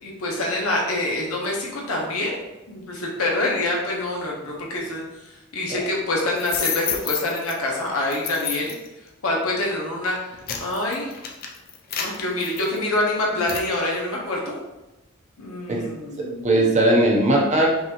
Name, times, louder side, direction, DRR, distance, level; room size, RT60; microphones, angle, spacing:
voice 1, 0.0-2.4 2.7-5.0 5.5-8.7 9.2-10.3 10.6-11.1 12.0-14.6 15.4-16.4, left 2 dB, 75° left, -3 dB, 1.1 m, -26 dB
sound 1, 6.4-7.5 8.1-8.9 9.5-9.7 10.2-13.0 13.5-13.7, left 7 dB, 45° left, 0.5 m, -30 dB
voice 2, 16.2-17.7, right 1 dB, 35° right, -2 dB, 0.8 m, -19 dB
5.3 x 2.6 x 2.9 m, 0.99 s
head